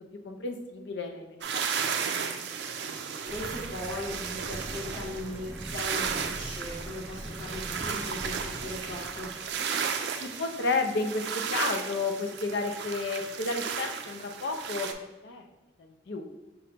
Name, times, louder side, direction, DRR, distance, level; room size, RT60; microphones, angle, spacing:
voice 1, 0.2-2.4 10.2-15.4 15.8-16.2, left 3 dB, 80° left, 5 dB, 0.5 m, -32 dB
sound 1, 1.4-14.9, right 6 dB, 70° right, 0.4 m, -34 dB
voice 2, 3.3-9.3, left 1 dB, 35° left, -7 dB, 1.2 m, -38 dB
sound 2, 3.3-9.7, equal, 5° right, 0.5 m, -42 dB
5.3 x 2.9 x 3.4 m, 1.1 s
head